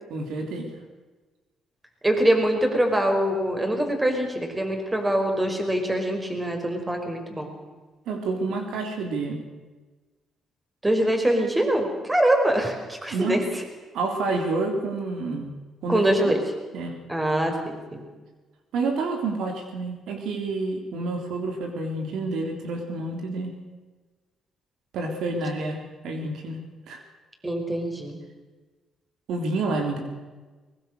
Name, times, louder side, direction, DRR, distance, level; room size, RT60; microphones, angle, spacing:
voice 1, 0.1-0.7 8.1-9.4 13.1-13.4 13.9-15.6 15.8-16.3 16.7-17.0 18.7-23.5 24.9-27.0 29.3-30.1, right 3 dB, 80° right, 4 dB, 3.6 m, -29 dB
voice 2, 2.0-7.5 10.8-13.6 15.9-16.4 17.1-18.1 27.4-28.2, right 1 dB, 15° right, 4 dB, 5.2 m, -24 dB
23.0 x 20.5 x 6.7 m, 1.3 s
cardioid pair, 90°, 0 cm